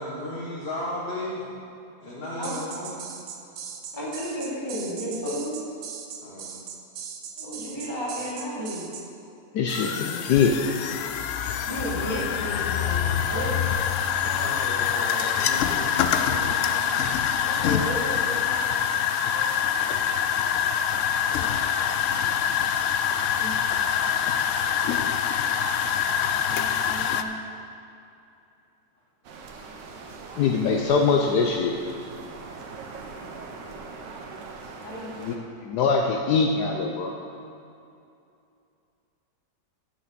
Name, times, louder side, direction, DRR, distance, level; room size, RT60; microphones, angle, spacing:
voice 1, 0.0-1.4 2.0-3.0 6.2-6.5 14.1-16.9, left 1 dB, 35° left, -7 dB, 1.6 m, -35 dB
sound 1, 2.4-9.1, right 7 dB, 65° right, 1.3 m, -39 dB
voice 2, 3.9-5.5 7.4-8.9 11.7-13.7 17.4-18.6 19.3-19.7 21.2-21.6 23.3-23.5 26.4-27.4 33.6-34.0 34.8-35.1, equal, 15° left, -7 dB, 2.7 m, -33 dB
voice 3, 9.5-10.6 30.4-31.8 35.2-35.3 35.6-37.1, left 5 dB, 75° left, 2 dB, 1.2 m, -23 dB
sound 2, 9.7-27.2, left 8 dB, 90° left, 0.6 m, -25 dB
sound 3, 29.2-35.4, right 4 dB, 85° right, 1.6 m, -41 dB
9.5 x 6.0 x 7.4 m, 2.6 s
omnidirectional pair, 1.9 m